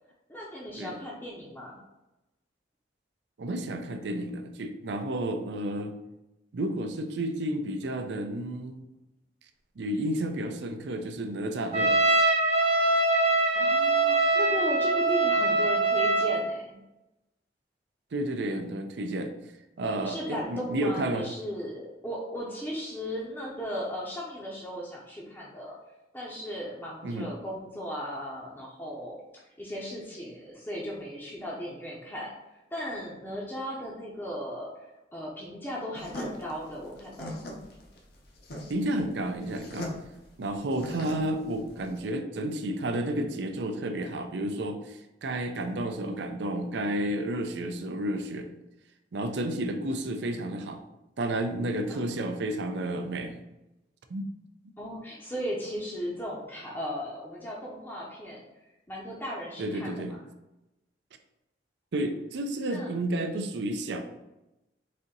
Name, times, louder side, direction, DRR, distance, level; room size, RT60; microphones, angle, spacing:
voice 1, 0.3-1.8 13.5-16.8 20.0-25.8 26.1-32.3 32.7-34.7 35.1-37.3 51.9-52.4 54.8-58.4 58.9-60.0 62.7-62.9 63.7-63.8, equal, 10° left, -5 dB, 0.6 m, -36 dB
voice 2, 3.4-5.9 6.5-8.8 9.8-12.0 18.1-19.3 19.8-21.3 27.0-27.3 38.7-39.9 40.4-48.5 49.1-50.8 51.2-53.4 54.1-54.3 59.6-60.2 61.9-64.0, right 1 dB, 75° right, 7 dB, 0.5 m, -31 dB
Trumpet, 11.7-16.5, right 2 dB, 35° right, 0.8 m, -23 dB
sound 1, 35.9-42.0, left 1 dB, 60° left, 0.8 m, -40 dB
4.2 x 2.7 x 3.8 m, 0.96 s
head